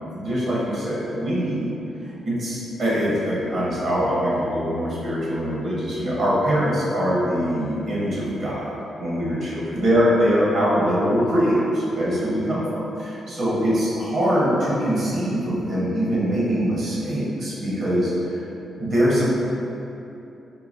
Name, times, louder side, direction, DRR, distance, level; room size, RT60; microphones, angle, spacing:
voice 1, 0.0-1.7 2.0-18.4 18.8-19.3, equal, 65° right, -7 dB, 0.9 m, -23 dB
3.8 x 2.1 x 2.5 m, 2.8 s
cardioid pair, 80°, 0 cm